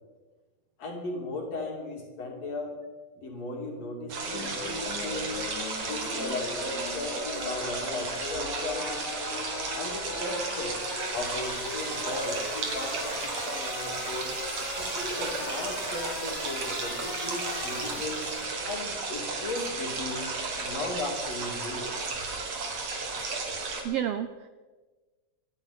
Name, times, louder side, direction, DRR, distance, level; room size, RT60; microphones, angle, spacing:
voice 1, 0.8-2.7 3.2-5.4 5.8-8.9 9.7-10.8 11.1-14.4 14.8-18.3 18.7-21.9, left 2 dB, 60° left, 0 dB, 3.8 m, -36 dB
sound 1, 4.1-23.8, right 3 dB, 60° right, 3.2 m, -34 dB
sound 2, 4.3-18.5, left 4 dB, 80° left, 3.0 m, -39 dB
voice 2, 23.3-24.5, right 10 dB, 80° right, 10 dB, 1.4 m, -33 dB
26.5 x 10.5 x 4.2 m, 1.3 s
omnidirectional pair, 3.3 m